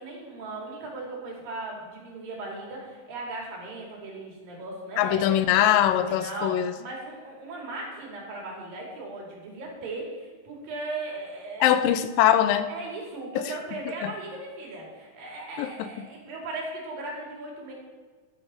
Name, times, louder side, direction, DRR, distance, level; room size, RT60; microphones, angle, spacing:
voice 1, 0.0-5.4 5.7-11.7 12.7-17.7, right 2 dB, 85° right, -2 dB, 4.3 m, -37 dB
voice 2, 5.0-6.7 11.6-12.7 13.4-13.5 14.0-14.1 15.6-15.9, left 11 dB, 85° left, 11 dB, 2.4 m, -22 dB
11.5 x 10.5 x 4.3 m, 1.4 s
omnidirectional pair, 3.9 m